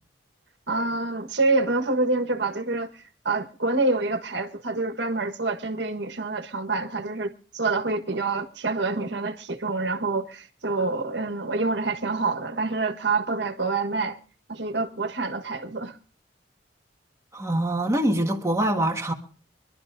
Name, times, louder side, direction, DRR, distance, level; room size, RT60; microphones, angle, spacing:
voice 1, 0.7-14.2 14.5-16.0, right 3 dB, 75° right, 1.5 m, -27 dB
voice 2, 17.3-19.1, right 1 dB, 15° right, 1.5 m, -24 dB
25.0 x 12.0 x 2.6 m
head